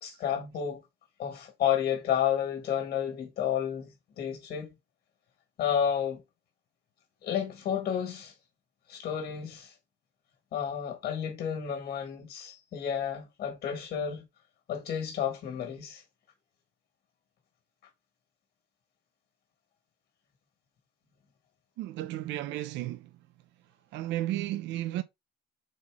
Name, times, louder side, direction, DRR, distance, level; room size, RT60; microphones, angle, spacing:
voice 1, 0.0-0.8 1.2-3.9 4.2-4.7 5.6-6.2 7.2-8.3 8.9-9.7 10.5-14.2 14.7-16.0, left 9 dB, 55° left, 1.6 m, -31 dB
voice 2, 21.8-23.1 23.9-25.0, right 14 dB, 70° right, 0.5 m, -33 dB
4.2 x 3.1 x 3.5 m
cardioid pair, 115°, 19 cm